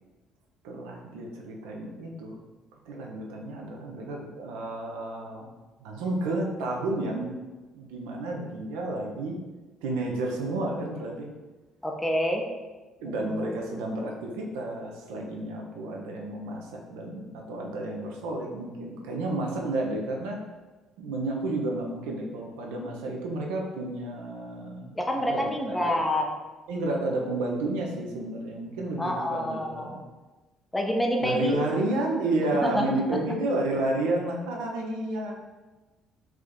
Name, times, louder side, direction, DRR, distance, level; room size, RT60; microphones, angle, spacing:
voice 1, 0.6-2.4 2.9-5.5 5.8-7.4 7.7-9.4 9.8-11.3 13.0-20.4 21.0-25.0 25.3-26.0 26.7-29.9 31.2-35.3, right 2 dB, 65° right, 0 dB, 0.5 m, -31 dB
voice 2, 11.8-12.5 13.1-13.6 24.9-26.3 29.0-30.0 30.7-31.6 32.6-32.9, equal, 10° left, 2 dB, 0.6 m, -27 dB
3.5 x 3.5 x 2.2 m, 1.2 s
figure-of-eight pair, 50°, 0 cm